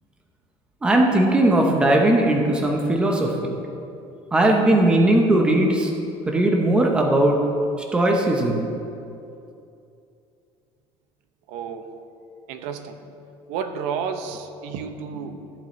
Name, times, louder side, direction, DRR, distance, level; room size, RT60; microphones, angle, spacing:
voice 1, 0.8-3.5 4.3-5.9 6.3-7.4 7.9-8.7, right 1 dB, 10° right, 1 dB, 0.8 m, -18 dB
voice 2, 11.5-11.9 12.5-13.0 13.5-15.6, right 6 dB, 80° right, 8 dB, 0.7 m, -31 dB
14.0 x 7.5 x 3.1 m, 2.6 s
cardioid pair, 175°, 11 cm